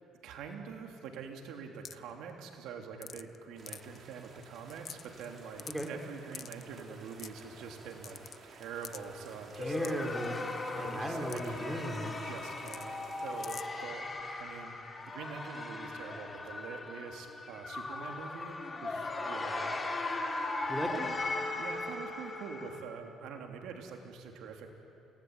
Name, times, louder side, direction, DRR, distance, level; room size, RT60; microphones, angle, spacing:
voice 1, 0.2-10.1 10.7-14.1 14.4-14.7 15.1-19.8 21.4-24.7, right 6 dB, 75° right, 2 dB, 3.3 m, -45 dB
sound 1, 1.9-2.1 3.0-3.4 3.7-4.0 4.4-4.5 4.7-5.3 5.6-5.9 6.3-6.7 7.2-7.4 8.0-8.4 8.8-9.0 9.8-9.9 11.3-11.4 11.7-11.8 12.7-12.9 13.4-13.6, left 8 dB, 45° left, 0.8 m, -44 dB
sound 2, 3.6-13.7, right 4 dB, 40° right, 4.2 m, -54 dB
sound 3, 9.5-22.8, left 3 dB, 25° left, 2.7 m, -38 dB
voice 2, 9.6-12.1 20.7-21.2, right 1 dB, 5° right, 3 dB, 3.8 m, -37 dB
28.5 x 19.5 x 9.7 m, 2.9 s
cardioid pair, 105°, 0 cm